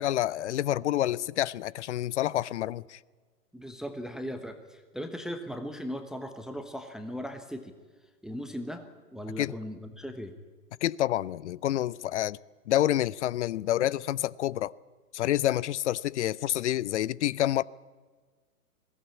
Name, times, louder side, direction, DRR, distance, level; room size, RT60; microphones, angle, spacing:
voice 1, 0.0-3.0 9.4-9.5 10.8-12.4 12.7-14.7 15.1-17.6, left 13 dB, 50° left, 0.5 m, -28 dB
voice 2, 3.5-7.7 8.2-8.9 9.1-10.3, equal, ahead, 1.0 m, -38 dB
20.5 x 16.5 x 8.5 m
hypercardioid pair, 130°, 48 cm